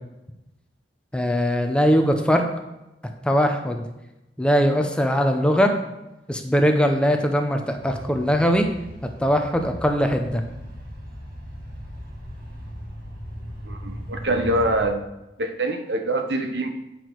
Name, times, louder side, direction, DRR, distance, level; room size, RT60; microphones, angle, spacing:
voice 1, 1.1-2.4 3.2-3.8 4.4-5.7 6.3-8.7 9.2-10.4, equal, 5° left, 4 dB, 0.7 m, -20 dB
sound 1, 7.7-14.8, equal, 55° right, 2.2 m, -38 dB
voice 2, 13.7-15.0 15.4-16.7, right 1 dB, 70° right, 5 dB, 1.0 m, -24 dB
8.9 x 6.1 x 4.6 m, 0.95 s
head